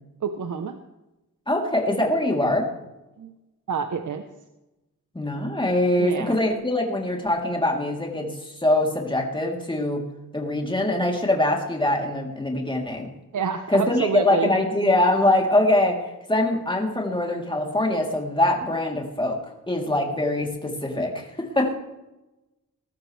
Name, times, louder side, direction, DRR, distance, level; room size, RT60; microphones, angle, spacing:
voice 1, 0.2-0.8 3.2-3.3 3.7-4.3 6.0-6.4 13.3-14.5, right 5 dB, 65° right, 6 dB, 1.1 m, -28 dB
voice 2, 1.5-2.7 5.1-10.1 10.3-13.1 13.7-19.4 19.7-21.8, left 1 dB, 15° left, 0 dB, 3.3 m, -23 dB
20.0 x 14.0 x 3.4 m, 0.98 s
wide cardioid pair, 95°, 32 cm